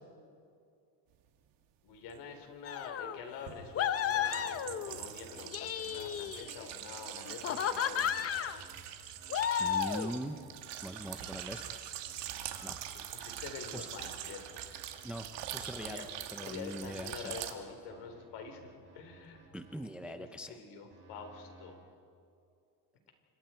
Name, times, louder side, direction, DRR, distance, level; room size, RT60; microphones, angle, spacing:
voice 1, 1.8-8.7 12.9-14.6 15.7-16.0 16.4-19.5 20.0-21.8, left 5 dB, 70° left, 5 dB, 4.0 m, -47 dB
sound 1, 2.1-2.2 3.5-17.5, right 11 dB, 75° right, 2.1 m, -44 dB
sound 2, 2.7-3.2 3.8-5.0 5.4-6.7 7.3-8.6 9.3-10.2, left 9 dB, 35° left, 0.7 m, -33 dB
sound 3, 3.4-3.7 4.1-4.3 4.7-4.8 5.2-5.4 5.8-6.0 6.4-6.5 6.9-7.1 7.5-7.7 8.0-8.2 8.6-8.8 9.2-9.3 9.7-9.9 10.3-10.5 10.9-11.1 11.4-11.6 12.0-12.8 13.2-15.0 15.4-17.3 17.9-19.7 20.9-21.7, right 4 dB, 25° right, 5.9 m, -58 dB
voice 2, 9.6-10.4 10.8-11.8 12.6-12.8 13.1-13.2 13.7-13.9 15.0-17.4 19.5-20.6, equal, 5° right, 8 dB, 0.5 m, -42 dB
29.5 x 26.0 x 4.5 m, 2.5 s
cardioid pair, 170°, 43 cm